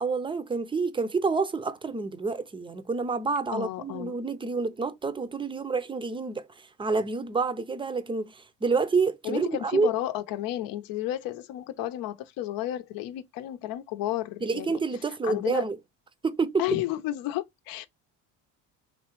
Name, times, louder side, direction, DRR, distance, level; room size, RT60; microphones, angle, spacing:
voice 1, 0.0-9.9 14.4-15.8 16.2-16.6, right 4 dB, 15° right, 0.5 m, -28 dB
voice 2, 3.5-4.2 9.2-14.8 15.2-15.6 16.6-17.9, left 14 dB, 75° left, 0.7 m, -32 dB
4.7 x 3.1 x 3.0 m
cardioid pair, 105°, 35 cm